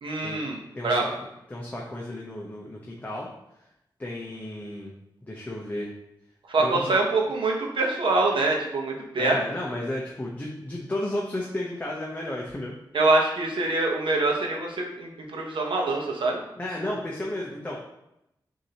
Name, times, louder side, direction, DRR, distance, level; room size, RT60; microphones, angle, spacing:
voice 1, 0.0-0.6 0.8-1.0 6.5-9.4 12.9-16.4, right 2 dB, 80° right, 0 dB, 0.9 m, -24 dB
voice 2, 0.7-1.1 1.5-3.3 4.0-4.9 5.2-5.9 6.6-6.9 9.2-12.7 16.6-17.8, left 1 dB, 20° left, -3 dB, 0.7 m, -33 dB
6.5 x 2.8 x 2.9 m, 0.84 s
wide cardioid pair, 95°, 9 cm